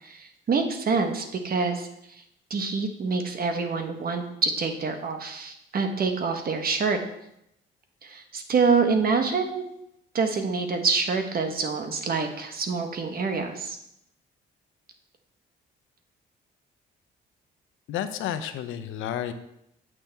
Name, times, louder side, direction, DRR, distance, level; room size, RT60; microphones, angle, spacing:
voice 1, 0.0-2.2 2.5-7.0 8.0-9.6 10.1-13.8, right 4 dB, 50° right, 6 dB, 1.2 m, -26 dB
voice 2, 17.9-19.3, left 10 dB, 90° left, 9 dB, 0.7 m, -31 dB
8.6 x 6.1 x 3.4 m, 0.78 s
cardioid pair, 90°, 20 cm